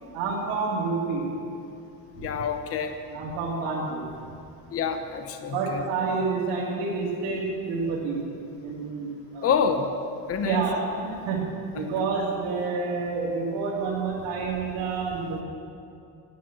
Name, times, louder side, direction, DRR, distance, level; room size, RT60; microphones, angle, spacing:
voice 1, 0.1-1.3 2.2-2.3 3.1-4.0 5.5-8.2 8.6-9.7 10.4-11.4 11.7-15.4, right 4 dB, 85° right, -7 dB, 2.6 m, -28 dB
voice 2, 2.2-3.0 4.7-5.8 9.4-9.9 10.3-10.6 11.8-11.9, left 6 dB, 35° left, 7 dB, 0.8 m, -27 dB
10.0 x 9.5 x 8.1 m, 2.5 s
cardioid pair, 135°, 40 cm